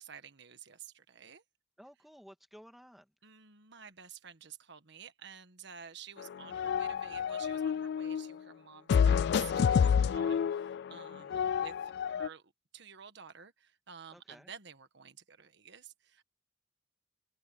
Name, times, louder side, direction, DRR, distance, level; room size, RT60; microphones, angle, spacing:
voice 1, 0.0-1.4 3.2-16.2, right 7 dB, 65° right, 1.5 m, -51 dB
voice 2, 1.8-3.1 11.1-11.4 14.1-14.5, equal, ahead, 2.2 m, -55 dB
sound 1, 6.2-8.3 8.9-12.3, left 7 dB, 60° left, 0.3 m, -29 dB
head